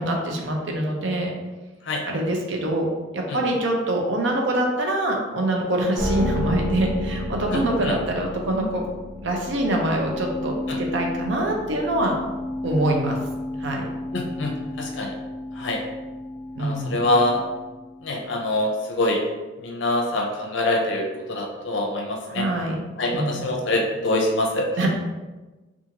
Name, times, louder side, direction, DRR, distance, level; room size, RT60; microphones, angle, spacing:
voice 1, 0.0-1.3 2.0-8.8 9.2-12.1 12.6-13.2 13.6-13.9 16.6-17.1 22.3-22.8 23.1-23.5 24.8-24.9, right 1 dB, 60° right, 1 dB, 0.5 m, -24 dB
sound 1, 6.0-18.3, left 1 dB, ahead, 0.3 m, -32 dB
voice 2, 14.1-14.5 14.8-15.1 15.6-15.8 16.6-17.4 18.0-19.2 19.6-22.4 23.0-24.7, left 2 dB, 65° left, 0 dB, 0.5 m, -24 dB
2.5 x 2.4 x 2.8 m, 1.2 s
head